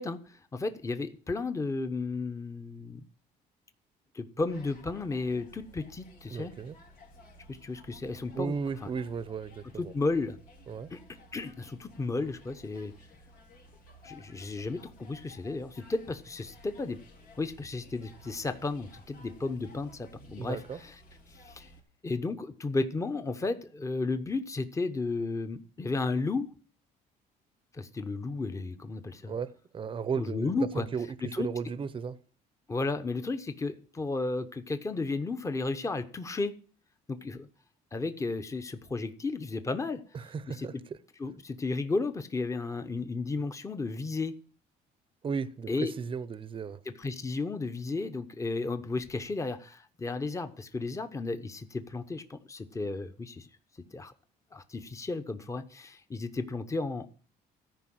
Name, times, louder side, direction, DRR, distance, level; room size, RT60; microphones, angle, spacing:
voice 1, 0.0-3.0 4.1-6.5 7.5-8.9 9.8-10.4 10.9-11.0 11.3-12.9 14.0-17.0 17.4-20.9 21.3-21.7 22.0-26.5 27.7-29.3 30.2-30.9 31.2-31.5 32.7-36.5 37.1-37.5 37.9-40.0 40.5-40.7 41.2-44.4 45.7-45.9 46.9-53.5 53.9-54.1 54.5-57.1, left 3 dB, 20° left, 0.9 m, -33 dB
sound 1, 4.5-21.8, equal, 80° left, 3.5 m, -55 dB
voice 2, 6.3-6.8 8.3-9.9 10.7-10.9 20.4-20.8 29.3-32.2 40.1-40.7 45.2-46.8, right 6 dB, 30° right, 0.7 m, -35 dB
13.5 x 5.2 x 7.8 m
cardioid pair, 110°, 17 cm